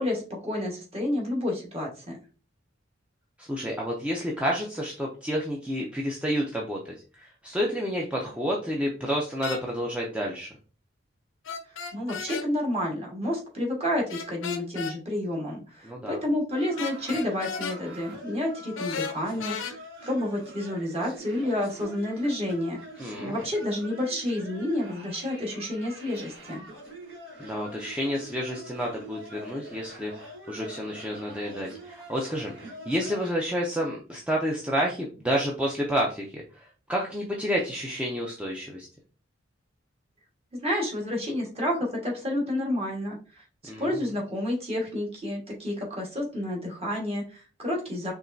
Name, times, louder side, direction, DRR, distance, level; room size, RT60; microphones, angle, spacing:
voice 1, 0.0-2.2 11.9-19.7 20.0-22.8 23.2-26.6 40.5-43.4 43.8-48.1, left 1 dB, 30° right, -1 dB, 1.5 m, -30 dB
voice 2, 3.4-6.8 7.1-10.5 15.8-16.2 23.0-23.4 27.4-38.9 43.7-44.0, equal, 5° right, -2 dB, 0.5 m, -30 dB
sound 1, 9.4-9.6 11.4-12.5 14.1-15.0 16.8-17.8 18.8-19.7, left 6 dB, 80° left, 0.6 m, -34 dB
sound 2, 16.5-33.3, equal, 70° right, 1.7 m, -45 dB
4.7 x 3.2 x 2.7 m, 0.37 s
head